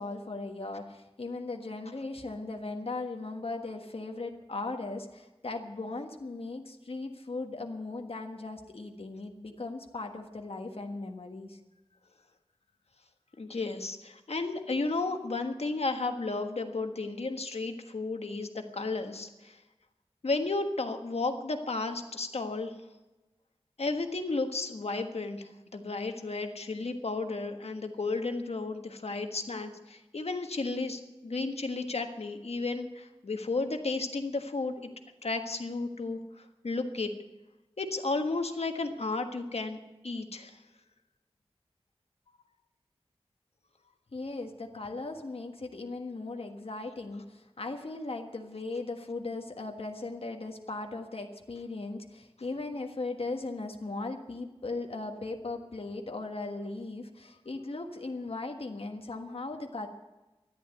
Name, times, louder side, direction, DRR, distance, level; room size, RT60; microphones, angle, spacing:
voice 1, 0.0-11.6 44.1-59.9, left 3 dB, 70° left, 3 dB, 1.5 m, -38 dB
voice 2, 13.4-19.6 20.2-22.8 23.8-34.9 35.2-37.1 37.8-39.8 40.0-40.6, left 3 dB, 85° left, 6 dB, 1.5 m, -33 dB
14.0 x 11.5 x 8.1 m, 1.1 s
wide cardioid pair, 65°, 10 cm